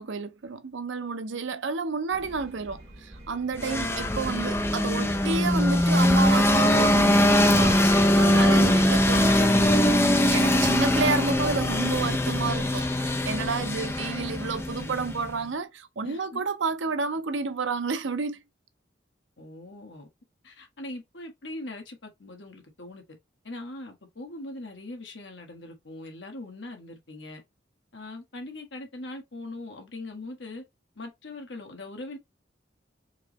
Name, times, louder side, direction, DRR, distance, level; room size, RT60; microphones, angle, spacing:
voice 1, 0.0-18.4, right 4 dB, 85° right, 0.6 m, -30 dB
sound 1, 2.1-13.7, right 1 dB, 30° right, 1.7 m, -43 dB
sound 2, 3.6-15.3, left 1 dB, 15° left, 0.4 m, -22 dB
voice 2, 16.0-16.4 19.4-20.1 20.4-23.0 23.4-27.4 27.9-30.6 31.0-32.2, left 2 dB, 75° left, 1.3 m, -41 dB
4.6 x 3.0 x 3.0 m
head